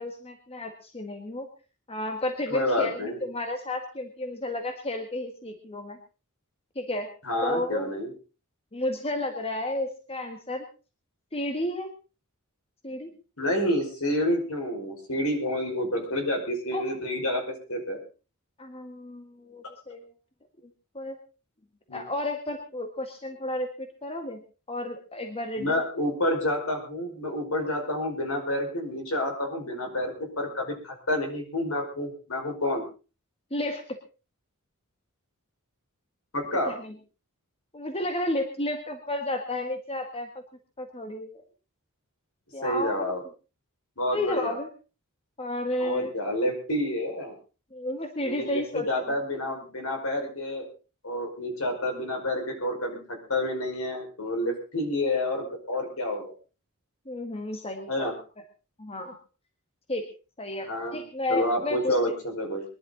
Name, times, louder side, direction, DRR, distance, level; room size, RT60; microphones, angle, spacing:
voice 1, 0.0-1.5 1.9-6.0 6.8-7.1 7.4-7.9 8.7-10.7 11.3-11.9 12.8-13.1 16.7-16.9 18.6-20.1 20.9-21.2 21.9-24.4 24.7-25.8 33.5-34.0 36.7-37.0 37.7-40.3 40.8-41.4 42.5-43.1 44.1-44.7 45.4-46.3 47.7-49.2 57.1-58.1 58.8-59.2 59.9-60.1 60.4-62.0, left 1 dB, 25° left, 5 dB, 1.7 m, -32 dB
voice 2, 2.5-3.2 7.2-8.1 13.4-17.4 17.7-18.0 21.9-22.0 25.6-32.8 36.3-36.7 42.6-43.2 44.0-44.6 45.8-47.4 48.2-50.7 51.0-53.0 53.3-56.3 57.9-58.1 60.7-61.0 61.3-62.6, left 1 dB, 70° left, 3 dB, 5.3 m, -29 dB
22.5 x 11.5 x 4.0 m, 0.34 s
head